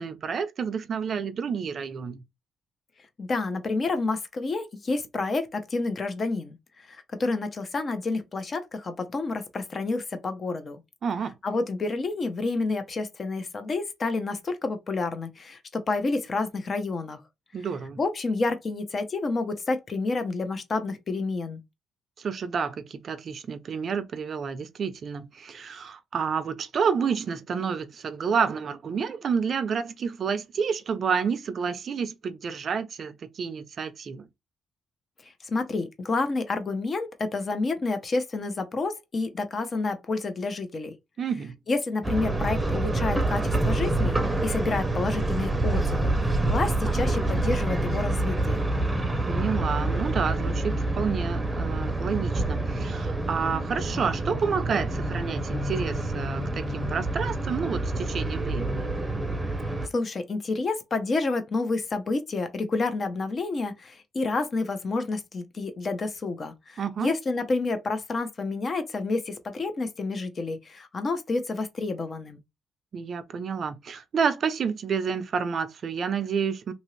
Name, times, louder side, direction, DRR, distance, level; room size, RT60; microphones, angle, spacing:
voice 1, 0.0-2.2 11.0-11.3 17.5-18.0 22.2-34.3 41.2-41.6 49.3-58.9 66.8-67.1 72.9-76.7, right 6 dB, 55° right, 0.5 m, -29 dB
voice 2, 3.2-10.8 11.4-17.2 18.0-21.6 35.2-40.9 41.7-48.6 59.9-72.4, left 3 dB, 40° left, 0.7 m, -29 dB
sound 1, 42.0-59.9, right 2 dB, 15° right, 0.7 m, -27 dB
2.8 x 2.5 x 3.1 m
cardioid pair, 90°, 0 cm